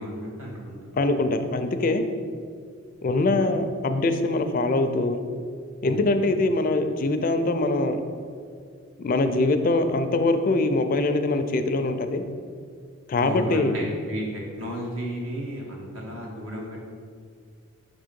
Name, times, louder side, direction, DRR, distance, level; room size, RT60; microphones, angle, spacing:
voice 1, 0.0-0.8 5.8-6.1 13.2-16.9, equal, 75° right, -2 dB, 1.4 m, -33 dB
voice 2, 1.0-2.0 3.0-5.2 5.8-8.0 9.0-12.2 13.1-13.8, left 2 dB, 40° left, 8 dB, 0.4 m, -23 dB
6.2 x 3.7 x 5.2 m, 2.1 s
head